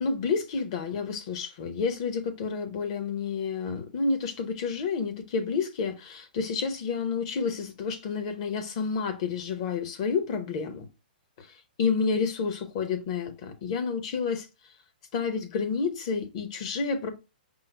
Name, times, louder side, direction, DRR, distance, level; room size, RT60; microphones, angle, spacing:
voice 1, 0.0-10.9 11.4-14.5 15.1-17.1, left 5 dB, 35° left, 0.8 m, -30 dB
5.4 x 2.0 x 4.3 m
hypercardioid pair, 160°, 5 cm